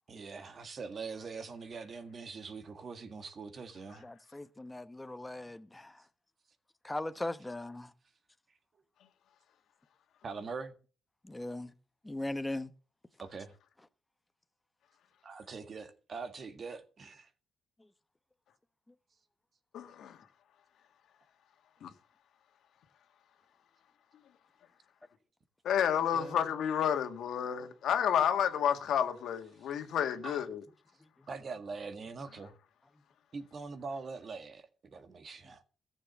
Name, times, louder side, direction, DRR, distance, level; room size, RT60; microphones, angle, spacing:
voice 1, 0.1-4.0 10.2-10.7 13.2-13.5 15.2-17.3 26.1-26.4 30.2-30.4 31.3-32.5 33.3-35.6, right 4 dB, 45° right, 1.8 m, -43 dB
voice 2, 4.0-6.0 6.8-7.9 11.2-11.7 12.0-12.7 17.8-17.9 31.2-31.3, left 1 dB, 10° left, 1.0 m, -39 dB
voice 3, 19.7-20.2 21.8-21.9 25.6-30.6, left 9 dB, 75° left, 1.8 m, -30 dB
14.0 x 7.4 x 7.1 m
cardioid pair, 90°, 0 cm